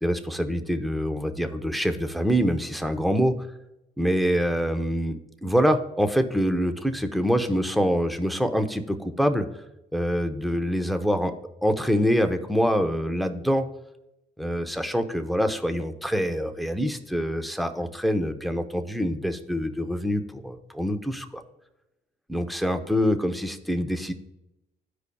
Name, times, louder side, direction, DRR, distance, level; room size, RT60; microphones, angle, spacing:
voice 1, 0.0-3.4 4.0-9.5 9.9-11.3 11.6-13.7 14.4-21.4 22.3-24.1, equal, ahead, 7 dB, 0.7 m, -25 dB
13.5 x 4.8 x 2.3 m, 0.89 s
cardioid pair, 90°, 20 cm